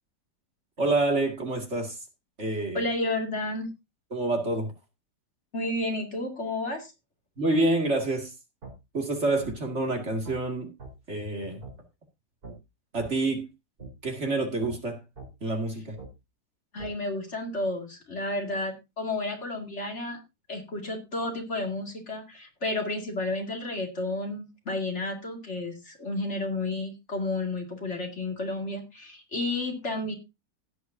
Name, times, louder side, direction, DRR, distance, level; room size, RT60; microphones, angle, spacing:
voice 1, 0.8-2.0 2.4-2.8 4.1-4.7 7.4-8.3 8.9-10.7 11.1-11.6 12.9-13.5 14.0-15.0 15.4-16.0, right 2 dB, 40° right, 2.5 m, -27 dB
voice 2, 2.7-3.7 5.5-6.9 16.7-20.2 20.5-30.1, left 2 dB, 45° left, 2.6 m, -31 dB
sound 1, 8.6-8.8 9.4-9.6 10.2-10.4 10.8-10.9 11.6-11.8 12.4-12.6 13.0-13.1 13.8-13.9 14.6-14.8 15.2-15.3 16.0-16.1 16.8-16.9, right 3 dB, 60° right, 4.8 m, -42 dB
16.5 x 8.4 x 2.7 m
omnidirectional pair, 1.8 m